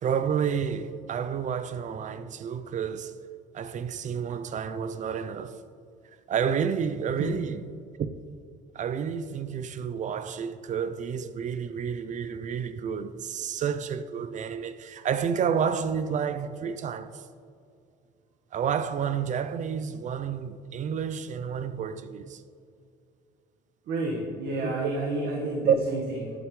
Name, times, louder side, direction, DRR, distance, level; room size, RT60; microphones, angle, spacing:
voice 1, 0.0-3.1 3.5-5.6 6.3-7.6 8.0-8.2 8.7-17.2 18.5-22.4 24.6-24.9 25.2-25.3 25.7-25.8, right 7 dB, 45° right, 0.5 m, -30 dB
voice 2, 23.9-26.3, right 2 dB, 65° right, 1.6 m, -30 dB
11.5 x 11.0 x 3.2 m
cardioid pair, 110°, 17 cm